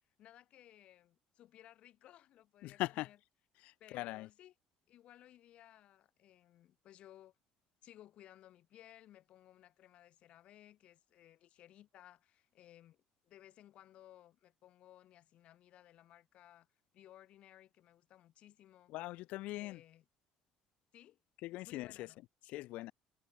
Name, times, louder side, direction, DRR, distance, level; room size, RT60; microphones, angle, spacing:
voice 1, 0.2-3.2 3.8-4.5 4.9-7.3 7.8-16.7 16.9-18.9 19.6-20.0 20.9-21.2 21.5-22.2, left 12 dB, 55° left, 3.4 m, -60 dB
voice 2, 2.6-3.1 3.6-4.3 18.9-19.8 21.4-22.1 22.5-22.9, left 18 dB, 70° left, 0.4 m, -41 dB
cardioid pair, 145°, 2 cm